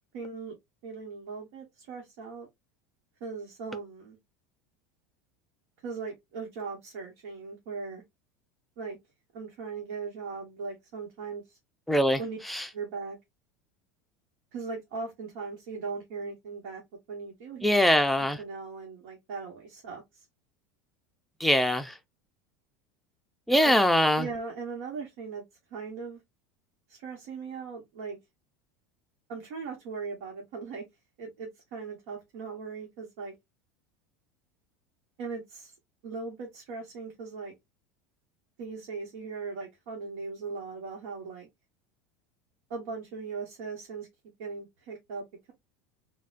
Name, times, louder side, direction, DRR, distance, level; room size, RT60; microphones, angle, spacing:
voice 1, 0.1-0.6 0.8-2.5 3.2-4.2 5.8-8.0 8.8-9.0 9.3-11.6 12.2-12.4 12.7-13.2 14.5-16.8 17.1-17.7 18.4-20.2 23.5-23.7 24.2-25.4 25.7-26.2 26.9-28.2 29.3-30.8 31.2-33.3 35.2-35.7 36.0-37.5 38.6-41.5 42.7-44.1 44.4-45.5, right 4 dB, 75° right, 1.2 m, -39 dB
voice 2, 11.9-12.2 12.5-12.6 17.6-18.4 21.4-21.9 23.5-24.3, equal, ahead, 0.5 m, -22 dB
4.0 x 2.2 x 2.4 m
supercardioid pair, 125°, 8 cm